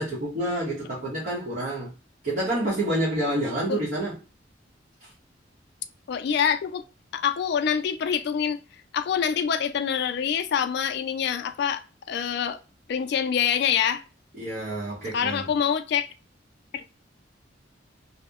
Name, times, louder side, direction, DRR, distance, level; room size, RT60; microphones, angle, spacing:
voice 1, 0.0-1.9 2.2-4.2 5.0-5.1 14.4-15.5, right 1 dB, 50° right, 0.8 m, -28 dB
voice 2, 6.1-6.8 7.1-8.6 8.9-12.6 12.9-14.0 15.1-16.1 16.7-16.8, left 8 dB, 65° left, 0.3 m, -25 dB
2.7 x 2.0 x 2.2 m
head